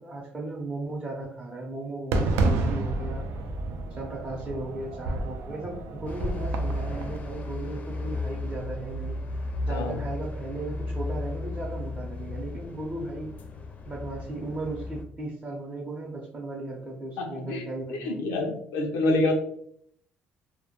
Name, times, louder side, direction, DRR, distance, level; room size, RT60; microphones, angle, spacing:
voice 1, 0.0-3.3 3.9-13.3 13.9-18.3, right 2 dB, 25° right, -4 dB, 0.6 m, -36 dB
Fireworks, 2.1-7.2, right 2 dB, 75° right, 0.4 m, -30 dB
sound 1, 6.1-15.0, left 1 dB, 35° left, 0.4 m, -34 dB
voice 2, 17.2-17.6 17.9-19.3, left 2 dB, 90° left, 1 dB, 0.4 m, -27 dB
2.1 x 2.1 x 2.9 m, 0.64 s
cardioid pair, 95°, 4 cm